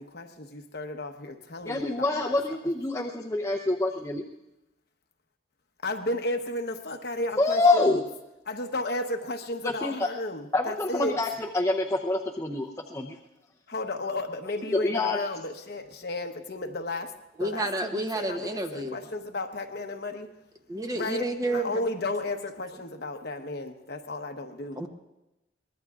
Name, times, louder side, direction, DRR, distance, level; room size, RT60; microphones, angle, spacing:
voice 1, 0.0-2.6 5.8-8.0 8.5-11.2 13.7-20.3 20.9-24.8, left 2 dB, 55° left, 5 dB, 1.0 m, -34 dB
voice 2, 1.6-4.2 7.4-8.1 9.8-10.1 10.5-13.2 14.8-15.3, left 2 dB, 15° left, -2 dB, 0.7 m, -26 dB
voice 3, 17.4-19.0 20.7-21.7 24.8-24.9, right 1 dB, 20° right, 4 dB, 0.8 m, -30 dB
23.5 x 19.5 x 2.4 m, 0.95 s
head